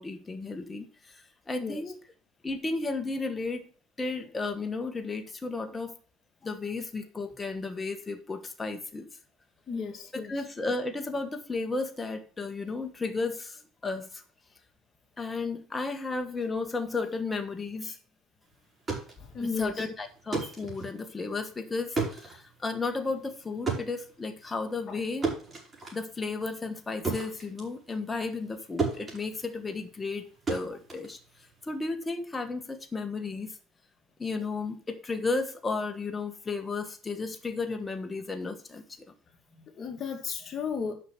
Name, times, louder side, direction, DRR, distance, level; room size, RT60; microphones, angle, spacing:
voice 1, 0.0-1.9 2.4-3.7 4.0-6.0 6.4-9.1 10.1-14.2 15.2-18.0 19.4-25.3 25.9-31.2 31.6-33.6 34.2-39.1, left 3 dB, 20° left, 6 dB, 1.4 m, -33 dB
voice 2, 9.7-10.3 19.2-19.9 24.9-25.0 39.6-40.9, left 5 dB, 35° left, 2 dB, 2.2 m, -34 dB
sound 1, 18.6-28.5 28.8-31.8, right 4 dB, 25° right, 4.5 m, -35 dB
6.7 x 5.9 x 7.4 m, 0.40 s
supercardioid pair, 105°, 0 cm